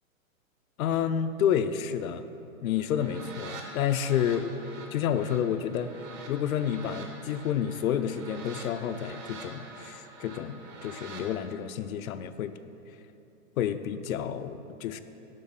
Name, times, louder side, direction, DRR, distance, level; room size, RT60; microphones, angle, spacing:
voice 1, 0.8-2.2 2.6-5.9 6.3-12.5 13.6-15.0, left 9 dB, 80° left, 11 dB, 0.5 m, -30 dB
sound 1, 2.8-11.3, right 3 dB, 30° right, 0.7 m, -46 dB
7.4 x 5.4 x 4.0 m, 2.8 s
hypercardioid pair, 150°, 41 cm